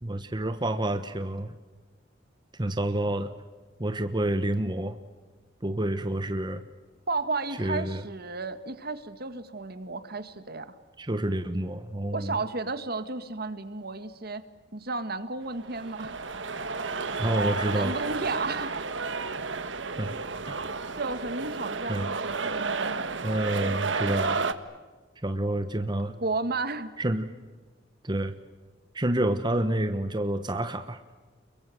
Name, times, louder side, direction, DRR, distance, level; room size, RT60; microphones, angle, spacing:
voice 1, 0.0-1.5 2.6-3.3 3.8-5.0 5.6-6.6 7.6-8.0 11.0-12.3 17.2-17.9 20.0-20.1 20.5-20.6 21.9-22.1 23.2-24.4 25.2-26.1 27.0-27.3 28.0-28.3 28.9-31.0, right 1 dB, 25° right, 9 dB, 1.2 m, -28 dB
voice 2, 7.1-10.7 12.1-14.4 14.7-16.2 17.6-18.9 21.0-23.1 26.2-26.9, right 3 dB, 55° right, 11 dB, 1.9 m, -33 dB
sound 1, 15.5-24.5, right 4 dB, 80° right, 1.6 m, -31 dB
29.5 x 23.0 x 7.9 m, 1.3 s
head